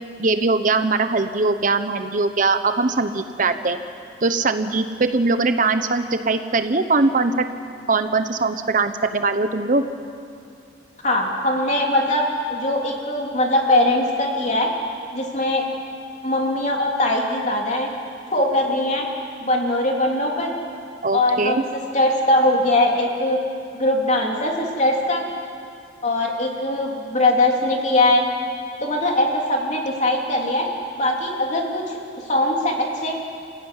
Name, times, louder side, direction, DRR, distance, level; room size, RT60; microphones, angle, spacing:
voice 1, 0.2-3.8 4.2-7.5 7.9-9.8 21.0-21.6, right 3 dB, 45° right, 9 dB, 0.9 m, -21 dB
voice 2, 11.0-12.2 12.5-14.7 15.1-15.6 16.2-17.9 18.3-19.1 19.4-20.5 21.1-21.6 21.9-23.4 23.7-25.2 26.0-28.2 28.8-30.7 30.9-31.8 32.3-32.7 33.0-33.2, left 1 dB, 40° left, 0 dB, 3.4 m, -21 dB
28.0 x 15.5 x 9.8 m, 2.4 s
head